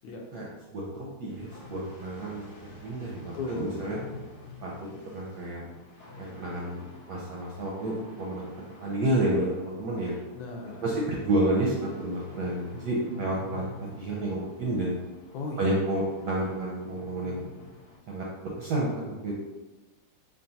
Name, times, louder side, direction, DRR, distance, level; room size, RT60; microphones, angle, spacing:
voice 1, 0.7-4.0 4.6-4.9 5.1-5.6 6.2-6.8 7.1-10.1 10.8-15.0 15.6-17.4 18.1-19.3, right 1 dB, 70° right, -3 dB, 1.0 m, -30 dB
sound 1, 1.3-18.0, left 2 dB, 50° left, 0.9 m, -48 dB
voice 2, 3.3-3.8 10.3-11.1 15.3-15.8, left 3 dB, 75° left, 0 dB, 1.2 m, -36 dB
3.9 x 2.4 x 3.9 m, 1.1 s
omnidirectional pair, 2.4 m